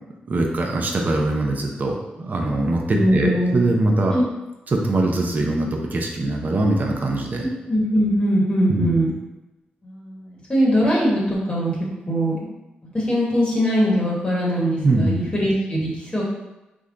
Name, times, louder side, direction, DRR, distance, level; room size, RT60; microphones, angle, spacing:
voice 1, 0.3-4.1 4.7-7.5 8.7-9.1 14.8-15.3, right 2 dB, 50° right, 1 dB, 0.7 m, -22 dB
voice 2, 2.9-3.6 4.1-4.2 7.4-9.1 9.8-11.7 12.0-12.5 12.9-16.2, equal, 25° left, -4 dB, 1.1 m, -21 dB
3.6 x 2.2 x 3.8 m, 1.0 s
cardioid pair, 55°, 4 cm